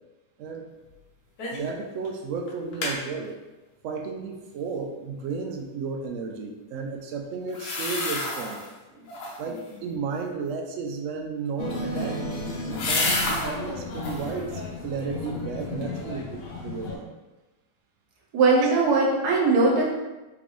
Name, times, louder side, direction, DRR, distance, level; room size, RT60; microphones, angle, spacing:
sound 1, 1.4-1.7 2.0-2.1 2.5-3.0 7.5-8.7 9.1-9.6 11.6-13.5 13.9-14.3 14.8-15.5 15.8-15.9, left 2 dB, 65° left, 1.3 m, -30 dB
voice 1, 1.5-3.4 3.8-8.6 9.4-12.2 12.7-17.1, right 4 dB, 90° right, 2 dB, 0.7 m, -33 dB
sound 2, 11.6-17.0, left 2 dB, 80° left, 0.5 m, -34 dB
voice 2, 18.3-19.8, right 3 dB, 65° right, -2 dB, 1.4 m, -20 dB
3.9 x 3.5 x 3.0 m, 1.1 s
omnidirectional pair, 1.9 m